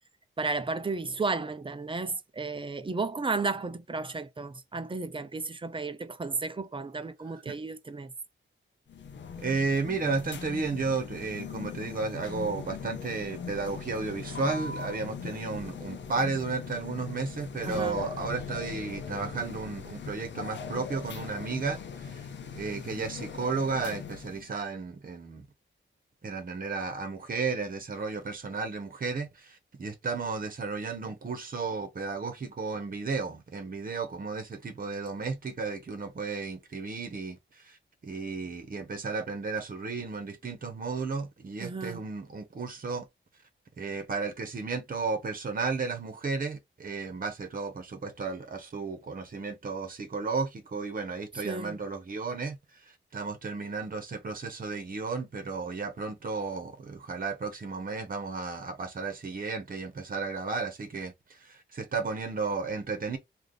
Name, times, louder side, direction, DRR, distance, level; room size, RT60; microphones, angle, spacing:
voice 1, 0.4-8.1 17.6-18.0 41.6-42.0 51.4-51.8, right 3 dB, 25° right, 0.5 m, -33 dB
sound 1, 8.9-24.5, left 6 dB, 60° left, 0.6 m, -40 dB
voice 2, 9.4-22.3 22.5-25.4 26.2-37.8 38.0-43.1 43.8-52.6 52.8-61.1 61.4-63.2, right 4 dB, 45° right, 1.0 m, -33 dB
3.4 x 2.4 x 3.8 m
wide cardioid pair, 140°, 21 cm